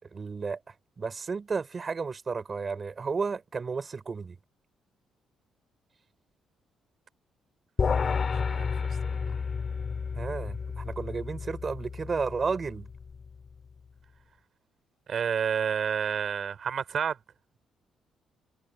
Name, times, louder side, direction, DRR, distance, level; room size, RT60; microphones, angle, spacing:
voice 1, 0.0-4.4 10.1-12.9, right 5 dB, 35° right, 5.1 m, -33 dB
sound 1, 7.8-13.3, left 5 dB, 40° left, 7.5 m, -31 dB
voice 2, 8.3-8.7 15.1-17.2, right 7 dB, 55° right, 6.0 m, -29 dB
cardioid pair, 90°, 0 cm